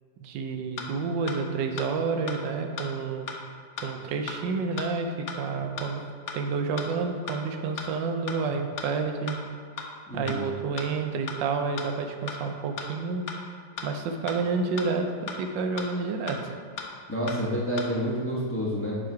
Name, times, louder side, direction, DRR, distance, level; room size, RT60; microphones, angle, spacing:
voice 1, 0.2-3.3 3.8-6.0 6.3-9.4 10.1-13.3 13.8-16.6, right 4 dB, 90° right, 5 dB, 1.3 m, -29 dB
sound 1, 0.8-0.9 1.3-1.4 1.8-1.9 2.3-2.4 2.8-2.9 3.3-3.4 3.8-3.9 4.3-4.4 4.8-4.9 5.3-5.4 5.8-5.9 6.3-6.4 6.8-6.9 7.3-7.4 7.8-7.9 8.3-8.4 8.8-8.9 9.3-9.4 9.8-9.9 10.3-10.4 10.8-10.9 11.3-11.4 11.8-11.9 12.3-12.4 12.8-12.9 13.3-13.4 13.8-13.9 14.3-14.4 14.8-14.9 15.3-15.4 15.8-15.9 16.3-16.4 16.8-16.9 17.3-17.4 17.8-17.9, left 6 dB, 60° left, 0.8 m, -35 dB
voice 2, 10.1-10.5 17.1-19.0, equal, 10° left, -6 dB, 0.9 m, -29 dB
7.4 x 3.8 x 4.6 m, 2.1 s
omnidirectional pair, 1.9 m